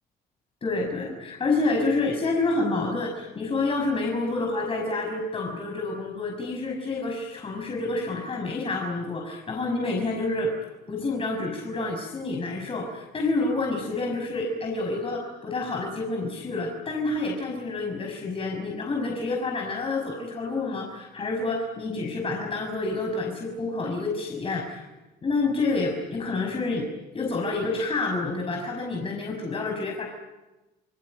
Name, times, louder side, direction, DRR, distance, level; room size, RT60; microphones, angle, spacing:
voice 1, 0.6-10.5 10.9-24.9 25.2-26.9 27.1-30.1, left 3 dB, 35° left, 1 dB, 5.9 m, -28 dB
28.5 x 20.0 x 9.4 m, 1.1 s
cardioid pair, 110°, 17 cm